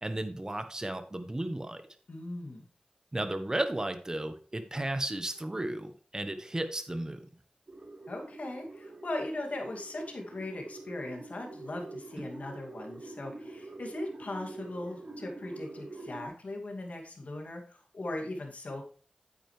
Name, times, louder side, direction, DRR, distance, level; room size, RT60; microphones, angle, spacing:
voice 1, 0.0-1.8 3.1-7.2 12.2-12.3, right 1 dB, 25° right, 9 dB, 1.2 m, -34 dB
voice 2, 2.1-2.7 8.1-18.8, left 1 dB, 65° left, 1 dB, 2.3 m, -39 dB
sound 1, 7.7-16.3, right 2 dB, 65° right, 4.4 m, -46 dB
9.2 x 8.9 x 3.3 m, 0.41 s
wide cardioid pair, 80°, 3 cm